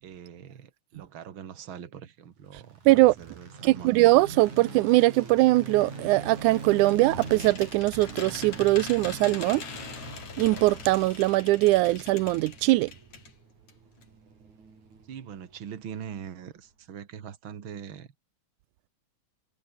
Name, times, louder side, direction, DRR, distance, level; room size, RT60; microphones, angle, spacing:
voice 1, 0.0-2.8 3.2-3.9 15.1-18.1, right 8 dB, 45° right, 2.3 m, -42 dB
sound 1, 2.5-16.6, right 4 dB, 70° right, 7.1 m, -44 dB
voice 2, 2.9-3.2 3.6-9.6 10.4-12.9, right 19 dB, 85° right, 2.1 m, -21 dB
sound 2, 6.5-13.4 13.7-13.8 14.0-14.1, left 6 dB, 65° left, 4.7 m, -43 dB
omnidirectional pair, 3.5 m